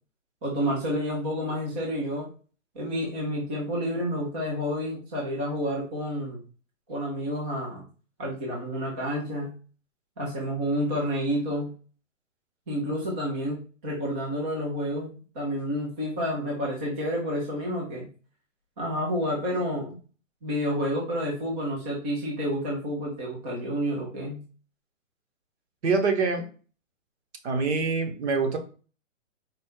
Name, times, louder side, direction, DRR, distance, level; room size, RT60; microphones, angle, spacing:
voice 1, 0.4-2.3 2.7-6.4 6.9-7.8 8.2-9.5 10.2-11.7 12.7-18.1 18.8-20.0 20.4-24.4, equal, 10° right, -4 dB, 0.3 m, -29 dB
voice 2, 25.8-26.4 27.4-28.6, right 4 dB, 60° right, 4 dB, 1.2 m, -25 dB
4.3 x 2.4 x 3.6 m, 0.37 s
hypercardioid pair, 135°, 38 cm